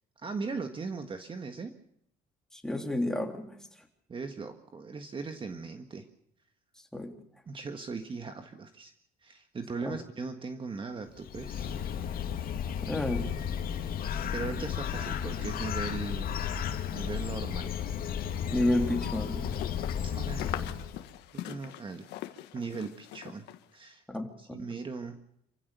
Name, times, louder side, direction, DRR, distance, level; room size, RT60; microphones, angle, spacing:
voice 1, 0.2-1.7 4.1-6.1 7.5-8.9 9.2-11.8 14.3-16.3 16.9-17.7 20.0-20.5 21.3-22.1 22.5-23.5 23.7-24.0 24.4-25.2, right 4 dB, 30° right, 6 dB, 1.6 m, -38 dB
voice 2, 2.5-3.6 6.9-7.1 9.8-10.0 12.8-13.3 18.5-19.6 24.1-24.7, left 1 dB, 5° left, 3 dB, 3.3 m, -31 dB
Bird, 11.1-21.1, left 8 dB, 60° left, 2.4 m, -34 dB
sound 1, 18.6-23.6, left 13 dB, 85° left, 1.6 m, -42 dB
27.5 x 15.5 x 6.9 m, 0.74 s
cardioid pair, 110°, 17 cm